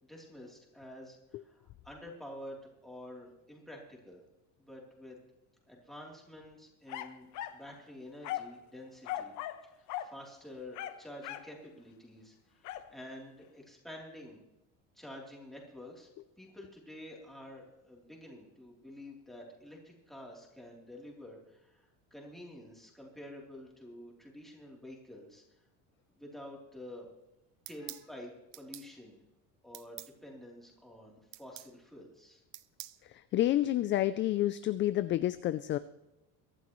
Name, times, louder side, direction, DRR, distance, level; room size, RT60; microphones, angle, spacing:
voice 1, 0.0-4.2 4.6-5.2 5.7-7.3 7.5-9.3 9.7-14.4 14.9-16.1 16.4-25.4 26.1-27.0 27.7-29.2 29.6-32.4, left 1 dB, ahead, -2 dB, 3.2 m, -49 dB
sound 1, 6.9-7.6 8.2-8.6 9.0-9.6 9.9-10.1 10.7-11.5 12.6-12.9, left 12 dB, 60° left, 1.0 m, -39 dB
sound 2, 27.7-28.1 28.5-28.9 29.7-30.1 31.3-31.7 32.5-33.0, right 17 dB, 70° right, 0.7 m, -46 dB
voice 2, 33.0-35.8, left 13 dB, 35° left, 13 dB, 0.4 m, -29 dB
23.0 x 11.5 x 3.1 m, 0.93 s
cardioid pair, 160°, 33 cm